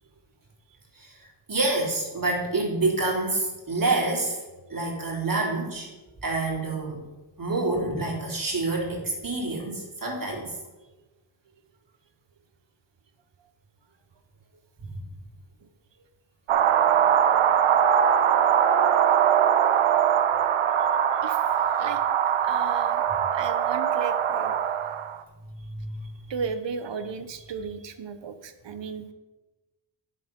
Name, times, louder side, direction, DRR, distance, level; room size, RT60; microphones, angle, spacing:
voice 1, 1.5-4.4 4.7-5.9 6.2-7.0 7.4-10.6 14.8-15.0 25.6-26.1, right 2 dB, 40° right, -2 dB, 3.5 m, -27 dB
sound 1, 16.5-25.2, right 9 dB, 80° right, 0.8 m, -22 dB
voice 2, 21.2-22.0 22.4-23.0 23.3-24.7 26.3-29.1, right 6 dB, 60° right, 10 dB, 1.1 m, -35 dB
9.4 x 6.7 x 5.5 m, 1.1 s
cardioid pair, 65°, 50 cm